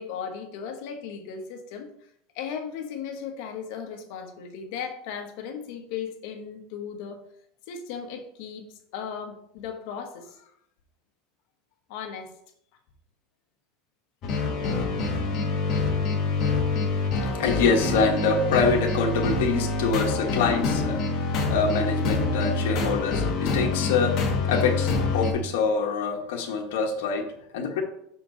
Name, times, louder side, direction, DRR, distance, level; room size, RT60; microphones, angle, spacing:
voice 1, 0.0-2.1 2.3-7.2 7.7-10.5 11.9-12.4, left 7 dB, 65° left, 4 dB, 1.2 m, -36 dB
sound 1, 14.2-25.3, left 3 dB, 40° left, 1.3 m, -26 dB
voice 2, 17.2-21.0 21.5-27.8, left 5 dB, 85° left, 2 dB, 1.2 m, -25 dB
6.3 x 4.4 x 3.9 m, 0.71 s
supercardioid pair, 150°, 0 cm